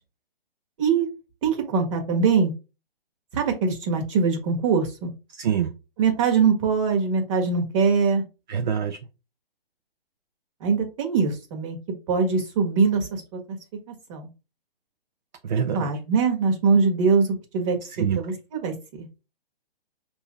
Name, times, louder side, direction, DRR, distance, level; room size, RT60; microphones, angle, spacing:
voice 1, 1.4-2.5 3.3-5.1 6.0-8.2 10.6-11.8 12.1-13.6 13.9-14.3 15.7-19.1, right 5 dB, 30° right, 1.5 m, -23 dB
voice 2, 5.4-5.7 8.5-9.0 15.4-15.9 18.0-18.2, right 8 dB, 45° right, 0.6 m, -25 dB
5.4 x 2.8 x 3.5 m
figure-of-eight pair, 140°, 30 cm